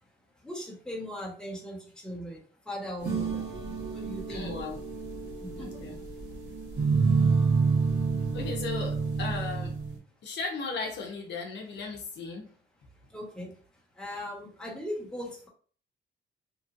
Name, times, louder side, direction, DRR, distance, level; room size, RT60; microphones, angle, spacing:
voice 1, 0.4-3.5 3.9-4.5 5.4-6.0 13.1-13.6 13.9-15.5, equal, 5° left, -3 dB, 1.1 m, -39 dB
sound 1, 3.0-10.0, right 4 dB, 60° right, 1.5 m, -28 dB
voice 2, 4.3-4.8 5.5-6.0 8.3-9.8 10.2-12.5, left 4 dB, 65° left, 1 dB, 0.7 m, -36 dB
2.9 x 2.4 x 2.6 m, 0.43 s
cardioid pair, 90°, 20 cm